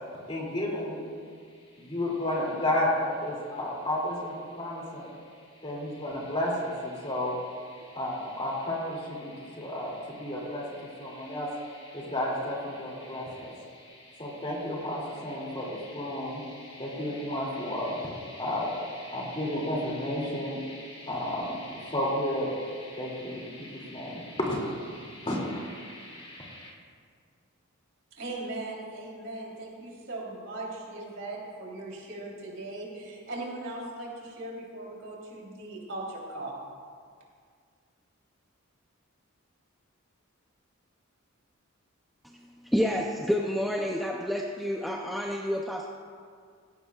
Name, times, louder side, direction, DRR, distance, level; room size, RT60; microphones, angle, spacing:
voice 1, 0.3-1.0 1.8-5.1 5.6-26.7, left 1 dB, 25° left, -3 dB, 2.6 m, -32 dB
voice 2, 28.2-36.6, right 2 dB, 60° right, -3 dB, 3.4 m, -39 dB
voice 3, 42.7-45.9, equal, ahead, -1 dB, 0.5 m, -29 dB
16.0 x 16.0 x 2.4 m, 2.1 s
head